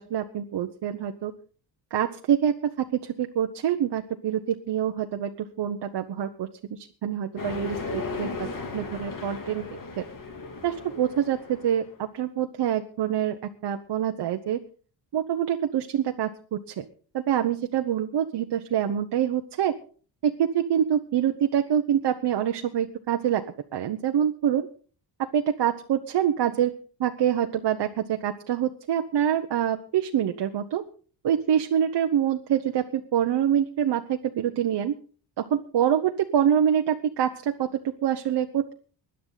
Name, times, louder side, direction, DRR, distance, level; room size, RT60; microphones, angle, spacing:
voice 1, 0.0-1.3 1.9-8.5 8.7-9.7 10.0-10.1 10.6-14.6 15.1-16.8 17.1-19.7 20.2-23.4 23.7-24.7 25.2-26.7 27.0-30.8 31.2-34.9 35.4-38.7, right 9 dB, 65° right, 6 dB, 1.1 m, -26 dB
sound 1, 7.4-11.9, left 3 dB, 45° left, 3.0 m, -36 dB
20.5 x 11.0 x 4.0 m, 0.41 s
cardioid pair, 125°, 43 cm